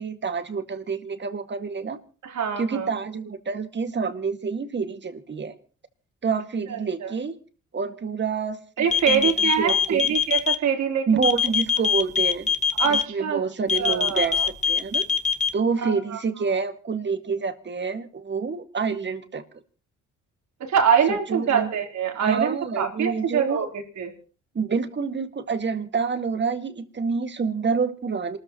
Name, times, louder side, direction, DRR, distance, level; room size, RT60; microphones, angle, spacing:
voice 1, 0.0-2.0 2.6-5.5 6.2-7.4 7.7-9.3 9.6-10.1 11.1-12.5 12.8-15.1 15.5-19.4 21.1-21.7 22.2-23.7 24.5-28.4, right 5 dB, 35° right, 9 dB, 2.1 m, -27 dB
voice 2, 2.2-2.9 6.7-7.1 8.8-11.3 12.8-13.4 13.7-14.5 15.8-16.2 20.6-24.1, right 7 dB, 70° right, 4 dB, 4.1 m, -25 dB
sound 1, 8.9-10.5 11.2-13.0 13.7-15.5, left 7 dB, 25° left, 1.4 m, -22 dB
27.5 x 14.0 x 3.1 m, 0.38 s
cardioid pair, 90°, 30 cm